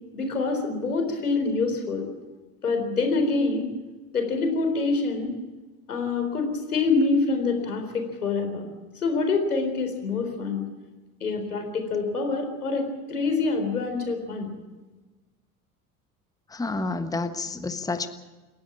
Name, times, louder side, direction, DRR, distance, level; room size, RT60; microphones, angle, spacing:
voice 1, 0.1-2.0 2.6-3.7 4.1-5.3 5.9-8.6 9.0-10.6 11.2-14.5, left 3 dB, 80° left, 4 dB, 4.1 m, -26 dB
voice 2, 16.5-18.1, left 3 dB, 10° left, 9 dB, 1.3 m, -29 dB
28.0 x 11.5 x 8.7 m, 1.2 s
figure-of-eight pair, 65°, 44 cm